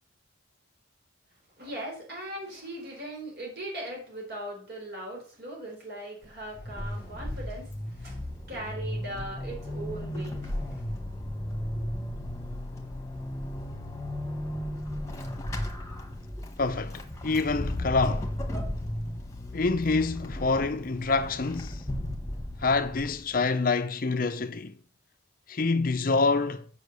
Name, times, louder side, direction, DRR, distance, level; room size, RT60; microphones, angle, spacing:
voice 1, 1.6-8.2 8.5-10.6 11.7-11.9, right 1 dB, 50° right, 4.3 m, -39 dB
Vehicle / Accelerating revving vroom / Squeak, 6.2-23.4, left 1 dB, 15° left, 1.5 m, -35 dB
voice 2, 16.6-18.3 19.5-21.9 22.6-24.8 25.5-26.7, left 3 dB, 45° left, 0.5 m, -27 dB
7.9 x 5.6 x 6.8 m
head